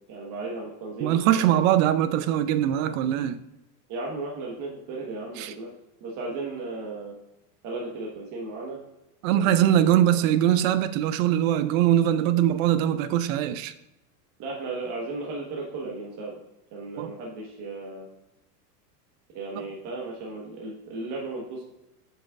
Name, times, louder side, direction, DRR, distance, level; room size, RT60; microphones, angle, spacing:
voice 1, 0.1-1.6 3.0-3.1 3.9-5.7 6.0-7.1 7.6-8.8 9.3-9.7 10.1-10.2 14.4-16.3 16.7-18.1 19.3-21.6, right 3 dB, 40° right, 1.4 m, -35 dB
voice 2, 1.0-3.4 5.4-5.5 9.2-13.7 17.0-17.1 19.6-19.7, right 11 dB, 60° right, 0.6 m, -22 dB
7.3 x 5.7 x 2.5 m
supercardioid pair, 125°, 47 cm